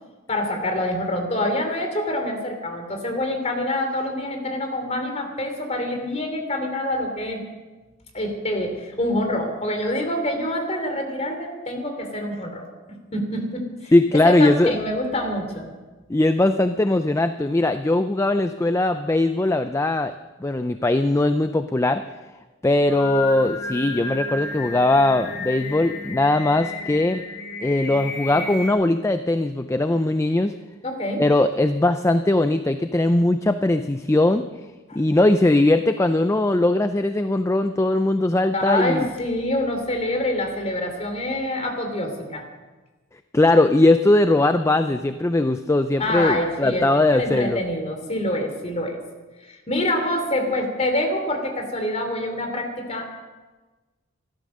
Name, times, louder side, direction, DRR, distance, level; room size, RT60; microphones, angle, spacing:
voice 1, 0.3-7.4 8.1-12.7 13.1-15.7 30.8-31.2 34.9-35.0 38.5-42.5 46.0-49.0 49.4-53.1, left 1 dB, 30° left, 4 dB, 3.0 m, -26 dB
voice 2, 13.9-14.8 16.1-20.1 20.4-22.0 22.6-27.2 27.6-30.5 31.2-34.5 35.0-39.1 43.3-47.6, left 2 dB, 15° left, 9 dB, 0.4 m, -20 dB
Singing, 22.7-28.7, left 2 dB, 55° left, 1.8 m, -32 dB
15.0 x 13.0 x 6.5 m, 1.2 s
head